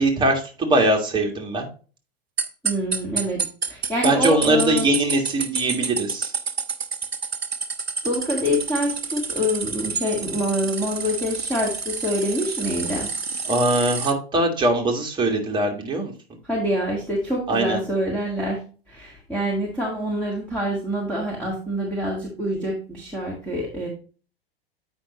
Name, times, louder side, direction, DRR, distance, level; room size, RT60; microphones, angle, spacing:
voice 1, 0.0-1.6 4.0-6.3 13.5-16.1 17.5-17.8, right 1 dB, 15° right, 1 dB, 1.7 m, -21 dB
sound 1, 2.4-14.1, right 5 dB, 90° right, 0.7 m, -29 dB
voice 2, 2.6-4.9 8.0-13.1 16.4-18.6 18.9-23.9, equal, 5° left, -3 dB, 1.9 m, -26 dB
8.6 x 5.4 x 3.0 m, 0.37 s
figure-of-eight pair, 100°, 30 cm